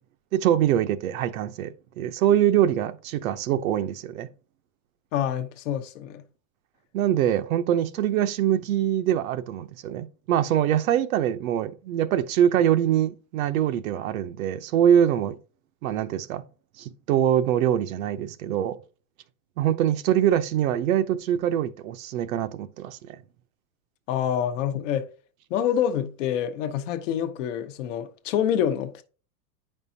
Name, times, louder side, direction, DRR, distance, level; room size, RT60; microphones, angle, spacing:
voice 1, 0.3-4.3 6.9-15.4 15.8-16.4 16.8-18.8 19.6-23.2, right 10 dB, 65° right, 0.7 m, -24 dB
voice 2, 5.1-6.2 24.1-25.1 25.5-29.0, left 9 dB, 55° left, 0.9 m, -27 dB
9.1 x 5.5 x 2.7 m
supercardioid pair, 165°, 45 cm